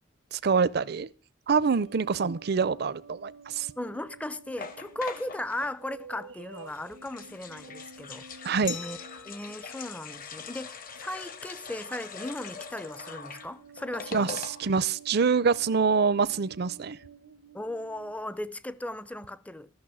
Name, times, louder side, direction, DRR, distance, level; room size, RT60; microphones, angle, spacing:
voice 1, 0.3-1.1 1.5-3.7 8.4-8.8 14.1-17.0, right 5 dB, 55° right, 0.5 m, -25 dB
sound 1, 1.7-11.1 11.9-12.2 12.5-18.2, right 4 dB, 90° right, 0.9 m, -51 dB
voice 2, 3.8-9.0 9.3-14.4 17.5-19.7, left 1 dB, 5° left, 0.4 m, -37 dB
sound 2, 4.6-5.7 6.6-14.9 15.2-15.3 15.5-15.8, left 5 dB, 45° left, 0.9 m, -43 dB
Glass, 8.7-11.4, left 10 dB, 65° left, 1.1 m, -44 dB
13.5 x 6.3 x 6.2 m
head